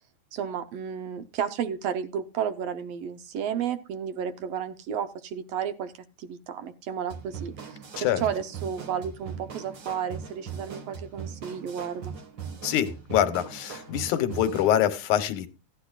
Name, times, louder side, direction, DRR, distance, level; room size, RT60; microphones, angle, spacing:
voice 1, 0.3-5.9 6.2-12.1, right 8 dB, 70° right, 1.6 m, -32 dB
sound 1, 7.1-14.8, right 7 dB, 45° right, 1.8 m, -40 dB
voice 2, 12.6-15.5, left 11 dB, 75° left, 2.3 m, -25 dB
16.5 x 10.5 x 2.4 m
omnidirectional pair, 3.6 m